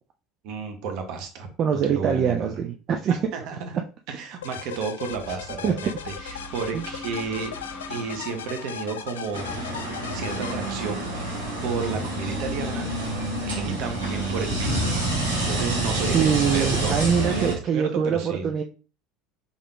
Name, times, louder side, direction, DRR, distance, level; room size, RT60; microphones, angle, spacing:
voice 1, 0.4-2.5 3.1-3.8 4.1-7.5 7.9-9.8 10.1-11.1 11.6-12.9 13.4-14.9 15.4-16.9 17.2-18.5, right 5 dB, 60° right, 5 dB, 1.0 m, -32 dB
voice 2, 1.6-3.3 5.6-6.0 6.7-6.8 16.1-18.6, right 7 dB, 40° right, 4 dB, 0.5 m, -24 dB
sound 1, 4.4-11.3, left 9 dB, 75° left, 0.3 m, -38 dB
sound 2, 5.1-10.7, left 2 dB, 30° left, 1.1 m, -43 dB
sound 3, 9.3-17.5, right 1 dB, 85° right, 1.5 m, -27 dB
5.3 x 3.7 x 2.3 m, 0.35 s
figure-of-eight pair, 70°, 0 cm